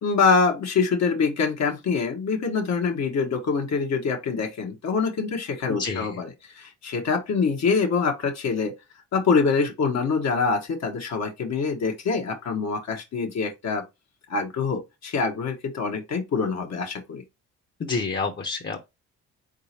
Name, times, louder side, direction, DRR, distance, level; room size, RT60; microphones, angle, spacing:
voice 1, 0.0-8.7 9.1-13.8 14.3-17.2, left 5 dB, 60° left, 1.3 m, -25 dB
voice 2, 5.7-6.1 17.8-18.8, left 4 dB, 35° left, 1.0 m, -28 dB
4.0 x 3.7 x 2.8 m
cardioid pair, 90°, 30 cm